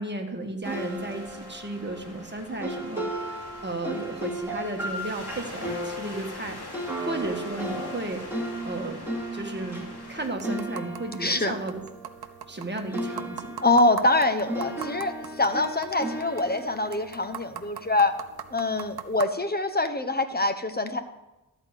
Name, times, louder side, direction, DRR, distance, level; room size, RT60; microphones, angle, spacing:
voice 1, 0.0-6.6 7.0-9.0 9.3-11.8 12.5-13.5, right 2 dB, 30° right, 3 dB, 1.7 m, -34 dB
sound 1, 0.6-10.3, left 2 dB, 90° left, 2.6 m, -44 dB
sound 2, 0.6-12.6 12.9-18.1, right 1 dB, 5° right, 2.8 m, -36 dB
sound 3, 10.2-19.3, right 8 dB, 75° right, 0.8 m, -42 dB
voice 2, 11.2-11.5 13.6-18.1 18.5-21.0, left 2 dB, 25° left, 9 dB, 1.0 m, -24 dB
13.5 x 4.7 x 8.1 m, 0.99 s
wide cardioid pair, 75°, 38 cm